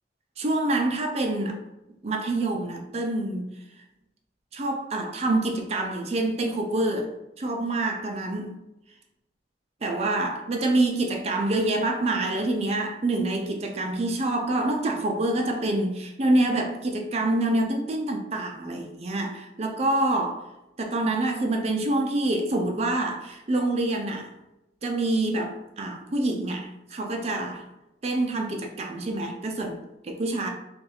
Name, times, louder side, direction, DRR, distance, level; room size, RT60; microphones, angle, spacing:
voice 1, 0.4-1.6 2.0-3.5 4.5-7.1 7.4-8.6 9.8-20.4 20.8-24.3 24.8-27.6 28.0-30.5, right 2 dB, 35° right, 2 dB, 0.5 m, -26 dB
2.6 x 2.3 x 4.1 m, 0.92 s
head